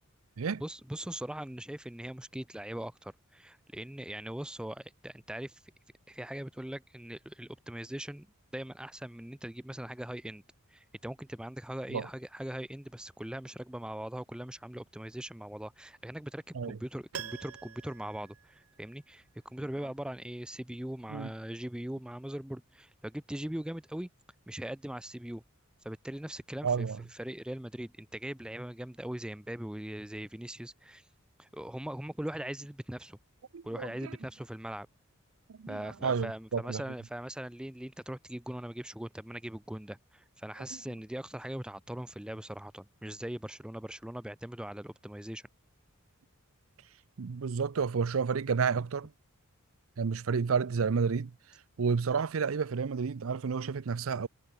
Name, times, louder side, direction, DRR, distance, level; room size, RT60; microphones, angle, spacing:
voice 1, 0.6-5.6 6.1-8.3 8.5-10.4 10.7-24.1 24.5-25.4 25.8-31.0 31.4-33.2 33.6-34.9 35.7-45.4, right 1 dB, 5° right, 0.4 m, -40 dB
Piano, 17.1-19.2 19.5-19.6, right 8 dB, 85° right, 0.9 m, -45 dB
voice 2, 26.6-27.0 33.5-34.1 35.5-36.8 47.2-49.1 50.0-51.3 51.8-54.3, right 5 dB, 70° right, 0.5 m, -30 dB
head